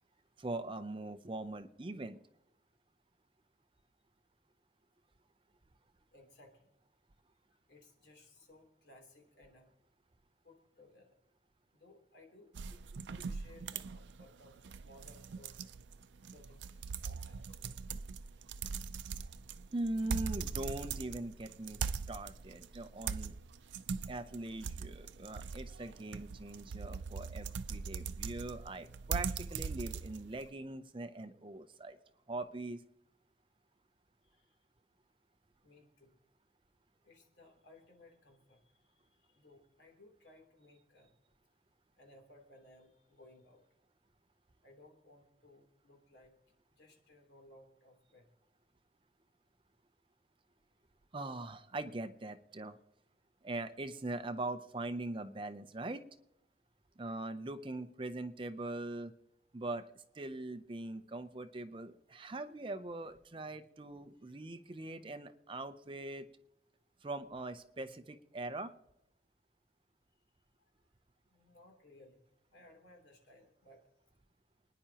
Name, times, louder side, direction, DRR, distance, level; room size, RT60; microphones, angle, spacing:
voice 1, 0.4-2.2 19.7-23.4 24.1-32.0 32.3-32.8 51.1-52.8 53.4-56.0 57.0-59.1 59.5-59.8 60.1-66.3 67.0-68.7, right 2 dB, 30° right, 9 dB, 0.6 m, -41 dB
voice 2, 6.1-6.7 7.5-9.7 10.4-11.2 11.7-12.5 13.1-15.5 16.3-16.6 17.0-17.6 20.1-20.2 34.2-34.6 35.6-36.2 37.0-38.9 39.2-41.1 42.0-43.6 44.6-46.3 46.8-48.3 64.2-64.3 71.3-72.2 72.5-73.9, left 1 dB, 80° left, 2 dB, 3.1 m, -61 dB
sound 1, 12.5-30.5, right 5 dB, 90° right, 0.5 m, -41 dB
28.5 x 10.0 x 2.9 m, 0.83 s
head